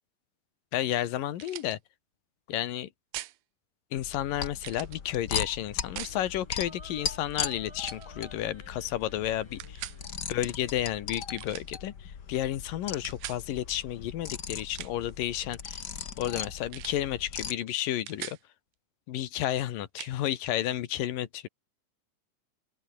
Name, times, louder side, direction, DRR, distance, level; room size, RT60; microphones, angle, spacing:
voice 1, 0.7-1.8 2.5-2.9 3.9-9.8 10.3-15.8 16.2-18.4 19.1-21.5, left 12 dB, 75° left, 3.0 m, -32 dB
sound 1, 1.4-1.8 3.1-3.4 4.6-5.0 6.0-6.2 7.3-7.6 7.9-8.1 9.6-10.0 11.4-11.7 13.0-13.4 14.6-15.1 16.7-17.0 17.4-17.5 17.8-18.4 20.0-20.1, right 16 dB, 70° right, 2.2 m, -41 dB
sound 2, 4.0-17.5, left 7 dB, 40° left, 1.6 m, -39 dB
sound 3, 5.9-11.1, left 1 dB, 5° left, 5.7 m, -54 dB
open air
omnidirectional pair, 4.0 m